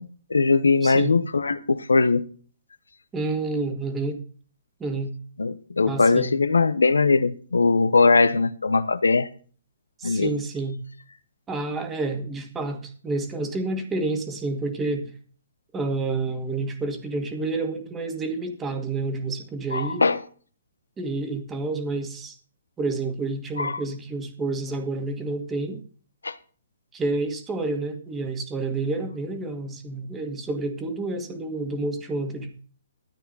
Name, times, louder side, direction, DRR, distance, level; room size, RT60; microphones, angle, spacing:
voice 1, 0.0-2.2 5.4-9.3 10.0-10.3 19.7-20.2 23.6-23.8 26.2-26.3, left 4 dB, 90° left, 1.1 m, -20 dB
voice 2, 0.8-1.2 3.1-4.2 4.8-5.1 5.8-6.3 10.0-10.8 11.5-15.1 15.7-20.0 21.0-22.4 22.8-25.8 26.9-32.5, right 3 dB, 15° right, 2.2 m, -29 dB
13.5 x 9.2 x 4.1 m
hypercardioid pair, 140°, 0 cm